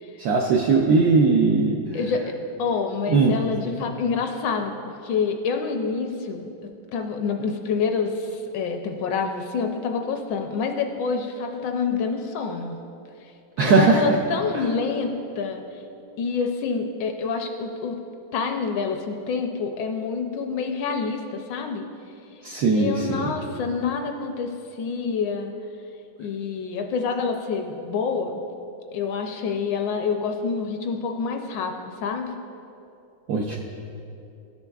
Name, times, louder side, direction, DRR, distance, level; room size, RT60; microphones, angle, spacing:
voice 1, 0.2-1.8 3.1-3.4 13.6-14.0 22.4-23.3 33.3-33.6, right 4 dB, 80° right, 0 dB, 0.8 m, -19 dB
voice 2, 1.9-6.5 6.9-12.8 13.2-13.3 13.6-15.8 16.2-18.0 18.3-21.9 22.7-25.5 26.2-28.4 28.9-32.3, left 5 dB, 75° left, 4 dB, 1.1 m, -27 dB
13.0 x 6.9 x 2.3 m, 2.8 s
omnidirectional pair, 2.2 m